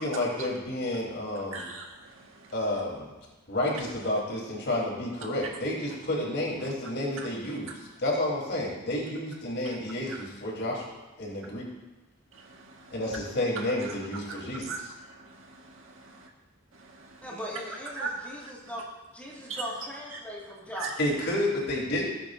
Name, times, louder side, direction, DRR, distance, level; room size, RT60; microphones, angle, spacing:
voice 1, 0.0-1.7 2.5-3.1 3.5-7.7 8.0-10.8 11.2-11.7 12.9-14.9 21.0-22.1, left 1 dB, 60° left, -3 dB, 4.0 m, -30 dB
voice 2, 1.5-2.5 7.2-7.3 9.6-9.7 10.1-10.2 12.3-12.9 13.8-14.0 14.3-14.4 14.7-16.3 16.7-17.3 18.0-18.5 19.3-19.6 20.1-20.2 20.7-20.9, right 4 dB, 80° right, 1 dB, 1.8 m, -40 dB
voice 3, 17.2-18.8 19.1-21.0, equal, 10° left, -5 dB, 2.2 m, -39 dB
18.0 x 8.9 x 2.7 m, 1.1 s
head